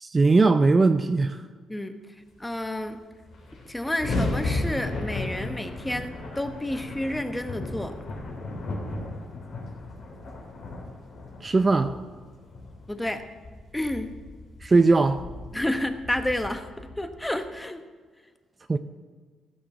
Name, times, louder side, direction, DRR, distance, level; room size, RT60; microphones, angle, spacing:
voice 1, 0.0-1.4 11.4-12.0 14.6-15.2 18.7-18.8, right 3 dB, 30° right, 0.5 m, -20 dB
voice 2, 2.4-3.0 3.6-7.9 12.9-13.2 13.7-14.1 15.5-17.8, left 1 dB, 10° left, 1.1 m, -30 dB
sound 1, 2.8-2.9 3.1-17.5, left 2 dB, 55° left, 3.5 m, -35 dB
15.0 x 6.6 x 6.0 m
cardioid pair, 90°, 0 cm